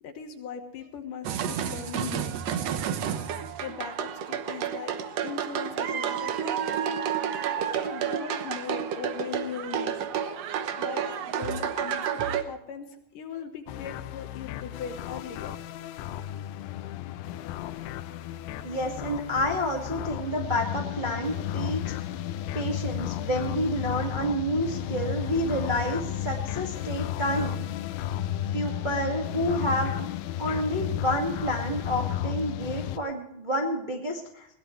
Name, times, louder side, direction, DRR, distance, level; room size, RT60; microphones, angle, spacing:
voice 1, 0.0-2.7 3.6-4.9 5.2-6.8 7.6-10.1 10.8-12.0 12.3-15.6, left 7 dB, 65° left, 6 dB, 2.5 m, -39 dB
sound 1, 1.2-12.4, right 8 dB, 85° right, 1.4 m, -30 dB
sound 2, 13.7-33.0, left 12 dB, 85° left, 2.7 m, -33 dB
voice 2, 18.6-21.8 22.5-27.6 28.5-30.1 30.4-34.5, equal, 20° right, 0 dB, 1.3 m, -29 dB
21.0 x 17.5 x 3.2 m, 0.77 s
omnidirectional pair, 4.5 m